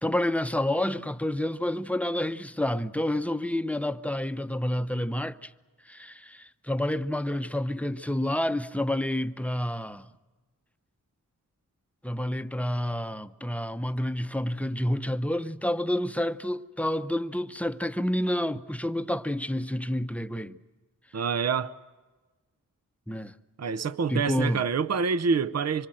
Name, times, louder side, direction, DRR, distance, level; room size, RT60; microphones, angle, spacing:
voice 1, 0.0-5.5 5.9-10.1 12.0-20.6 23.1-23.3 24.1-24.6, left 1 dB, 5° left, 0.8 m, -29 dB
voice 2, 21.1-21.8 23.6-25.9, right 5 dB, 50° right, 0.7 m, -26 dB
26.0 x 23.5 x 7.6 m
wide cardioid pair, 95°, 33 cm